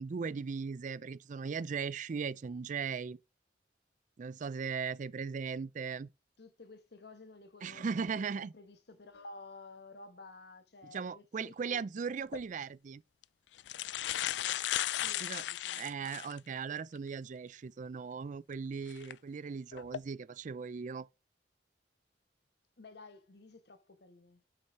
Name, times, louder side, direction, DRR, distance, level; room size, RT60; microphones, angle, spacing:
voice 1, 0.0-3.2 4.2-6.1 7.6-8.5 10.8-13.0 15.2-15.4 15.8-21.1, right 5 dB, 45° right, 0.4 m, -38 dB
voice 2, 6.4-11.8 15.0-16.1 22.8-24.4, left 3 dB, 65° left, 1.1 m, -53 dB
sound 1, 12.2-12.4 13.2-13.3 13.6-16.4 16.9-17.0 18.9-19.1 19.7-20.0, left 13 dB, 85° left, 0.4 m, -35 dB
9.8 x 5.5 x 4.6 m
head